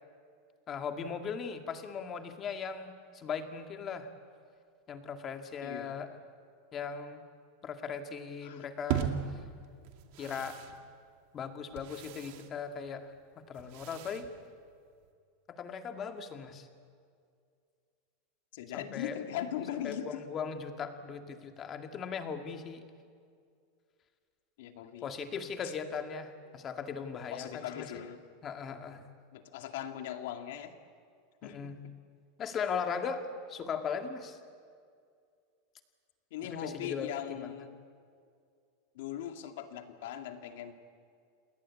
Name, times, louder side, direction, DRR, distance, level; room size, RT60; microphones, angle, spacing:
voice 1, 0.7-4.1 4.9-6.1 6.7-7.2 7.6-9.1 10.2-10.6 11.3-13.1 13.4-14.3 15.5-16.7 18.7-19.2 19.8-22.8 25.0-27.9 28.4-29.0 31.4-31.8 32.4-34.4 36.5-37.5, left 6 dB, 25° left, 6 dB, 2.0 m, -38 dB
voice 2, 5.6-6.0 8.4-8.7 10.2-10.3 18.5-20.2 24.6-25.1 25.6-25.7 27.3-28.2 29.3-30.7 31.4-31.9 36.3-37.8 38.9-40.7, left 10 dB, 70° left, 6 dB, 2.4 m, -40 dB
sound 1, 8.9-15.1, right 9 dB, 55° right, 2.3 m, -40 dB
28.5 x 20.5 x 8.6 m, 2.2 s
supercardioid pair, 155°, 0 cm